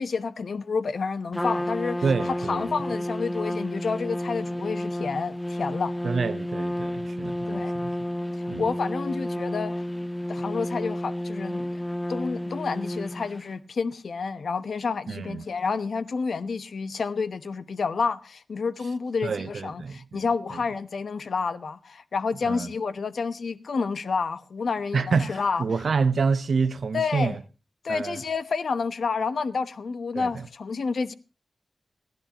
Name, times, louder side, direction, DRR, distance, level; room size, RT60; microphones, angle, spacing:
voice 1, 0.0-2.0 2.5-5.9 7.5-7.7 8.4-9.8 10.3-11.7 12.1-25.6 26.9-27.4 27.8-31.1, left 5 dB, 85° left, 0.9 m, -29 dB
Trumpet, 1.3-13.5, left 1 dB, 15° left, 0.7 m, -31 dB
voice 2, 2.0-2.7 6.0-7.9 8.5-8.7 15.1-15.4 19.2-20.2 20.5-20.6 22.4-22.7 24.9-27.4 27.9-28.2 30.1-30.5, right 5 dB, 80° right, 0.9 m, -28 dB
29.0 x 10.5 x 2.9 m
wide cardioid pair, 110°, 0 cm